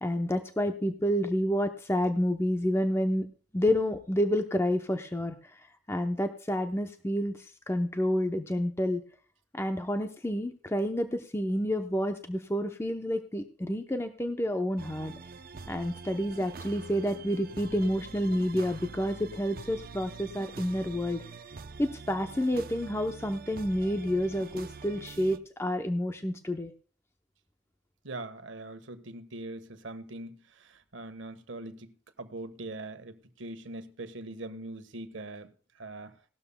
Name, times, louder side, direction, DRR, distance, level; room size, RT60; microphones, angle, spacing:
voice 1, 0.0-3.3 3.5-5.6 5.9-9.0 9.5-15.1 15.7-21.2 21.8-26.7, equal, 15° left, 6 dB, 0.6 m, -29 dB
sound 1, 14.8-25.4, right 4 dB, 50° right, 0.6 m, -45 dB
voice 2, 28.0-35.5 35.8-36.2, right 2 dB, 80° right, 10 dB, 1.3 m, -42 dB
18.0 x 12.5 x 2.2 m, 0.39 s
head